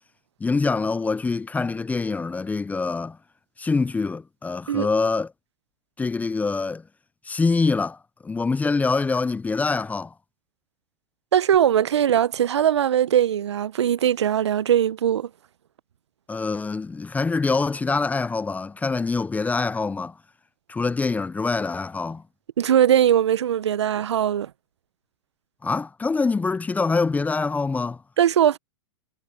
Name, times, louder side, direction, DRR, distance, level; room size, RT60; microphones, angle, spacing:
voice 1, 0.4-3.2 3.6-5.3 6.0-6.8 7.3-8.0 8.2-10.1 16.3-20.1 20.7-22.2 25.6-28.0, left 4 dB, 10° left, 0.8 m, -25 dB
voice 2, 11.3-15.3 22.6-24.5 28.2-28.6, right 10 dB, 75° right, 1.0 m, -20 dB
hypercardioid pair, 110°, 14 cm